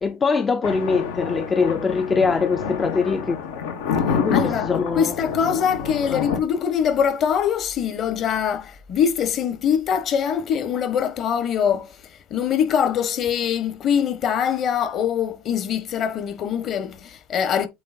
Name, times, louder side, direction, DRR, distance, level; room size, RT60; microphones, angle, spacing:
voice 1, 0.0-3.4 4.1-5.1 6.1-6.2, left 5 dB, 20° left, 0.5 m, -22 dB
Thunder, 0.6-6.4, left 6 dB, 90° left, 2.2 m, -27 dB
voice 2, 4.3-12.0 12.3-17.7, left 8 dB, 40° left, 1.2 m, -23 dB
8.5 x 3.3 x 4.3 m
supercardioid pair, 135°, 0 cm